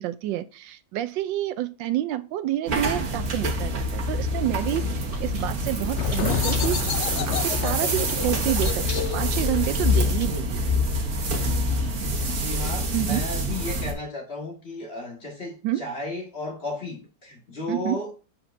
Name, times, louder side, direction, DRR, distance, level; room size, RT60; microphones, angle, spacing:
voice 1, 0.0-6.8 7.3-10.6 12.9-13.2 15.6-15.8 17.7-18.0, right 13 dB, 80° right, 1.3 m, -28 dB
sound 1, 2.7-13.9, left 1 dB, 50° right, 1.6 m, -26 dB
Chewing mastication, 4.3-11.5, equal, 20° right, 1.1 m, -43 dB
sound 2, 5.9-11.3, left 9 dB, 80° left, 0.6 m, -31 dB
voice 2, 12.3-18.1, left 2 dB, 35° left, 2.0 m, -34 dB
7.5 x 5.7 x 2.6 m
omnidirectional pair, 2.0 m